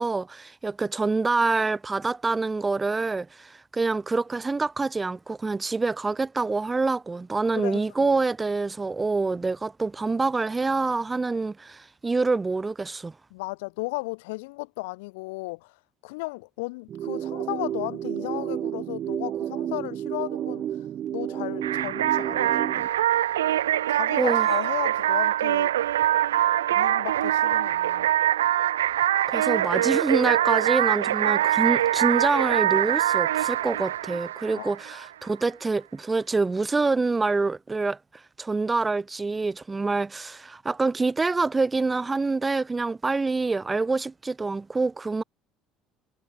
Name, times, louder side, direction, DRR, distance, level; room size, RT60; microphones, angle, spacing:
voice 1, 0.0-13.1 24.2-24.5 29.3-38.0 38.4-45.2, right 3 dB, 20° right, 5.1 m, -26 dB
voice 2, 7.5-8.2 13.3-15.8 16.0-20.7 21.1-22.9 23.9-25.7 26.7-28.1 34.6-34.8, left 25 dB, 80° left, 7.8 m, -35 dB
sound 1, 16.9-22.9, right 10 dB, 55° right, 3.2 m, -31 dB
sound 2, 21.6-35.1, right 12 dB, 90° right, 5.6 m, -23 dB
hypercardioid pair, 70°, 0 cm